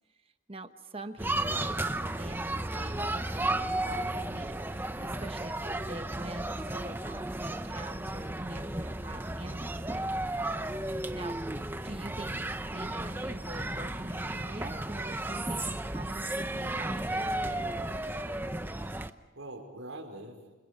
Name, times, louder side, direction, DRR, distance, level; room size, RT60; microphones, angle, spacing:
voice 1, 0.5-10.1 11.1-17.9, right 2 dB, 30° right, 8 dB, 1.1 m, -44 dB
sound 1, 1.2-19.1, right 1 dB, 10° right, 0.8 m, -34 dB
voice 2, 11.0-11.3 18.7-20.5, right 1 dB, 80° right, 2 dB, 5.3 m, -46 dB
29.5 x 27.0 x 5.4 m, 1.2 s
head